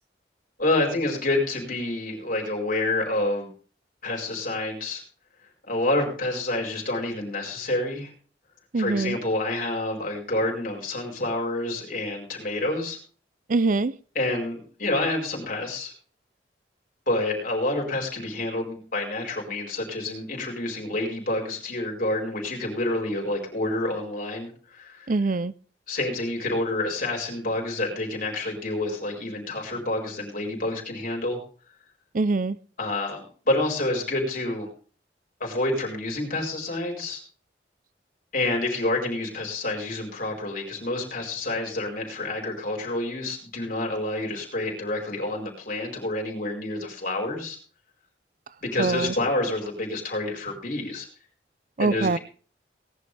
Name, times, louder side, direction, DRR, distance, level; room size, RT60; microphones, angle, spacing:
voice 1, 0.6-3.5 4.0-5.0 5.7-8.1 8.7-13.0 14.1-15.9 17.1-25.1 25.9-31.4 32.8-34.7 35.4-37.2 38.3-47.6 48.6-51.1 51.8-52.2, left 2 dB, 50° left, 5.1 m, -28 dB
voice 2, 8.7-9.2 13.5-13.9 25.1-25.5 32.1-32.6 48.8-49.1 51.8-52.2, right 3 dB, 45° right, 0.5 m, -23 dB
19.0 x 11.0 x 3.4 m
head